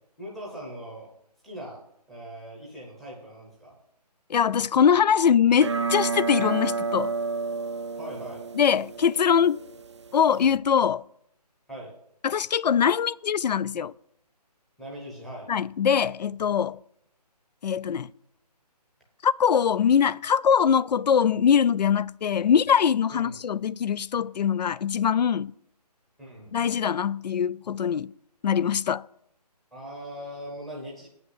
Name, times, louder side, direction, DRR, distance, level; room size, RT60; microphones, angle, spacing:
voice 1, 0.2-1.1 1.4-1.8 2.1-3.7 8.0-8.4 11.7-11.9 14.8-15.5 23.1-23.4 26.2-26.6 29.7-31.1, equal, ahead, 0.8 m, -40 dB
voice 2, 4.3-7.1 8.6-9.6 10.1-11.0 12.2-13.9 15.5-16.8 17.6-18.1 19.2-25.5 26.5-28.1 28.4-29.1, left 7 dB, 85° left, 0.4 m, -22 dB
sound 1, 5.5-10.6, right 4 dB, 45° right, 0.4 m, -31 dB
8.9 x 5.7 x 7.8 m
hypercardioid pair, 170°, 21 cm